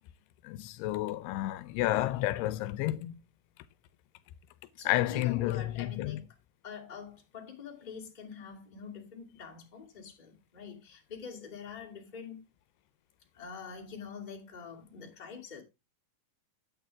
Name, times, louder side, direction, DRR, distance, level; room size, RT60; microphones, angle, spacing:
voice 1, 0.4-3.2 4.9-6.2, left 16 dB, 85° left, 2.6 m, -31 dB
voice 2, 4.8-6.2 6.6-12.4 13.3-15.6, left 6 dB, 15° left, 1.9 m, -45 dB
9.1 x 9.0 x 3.4 m
omnidirectional pair, 4.7 m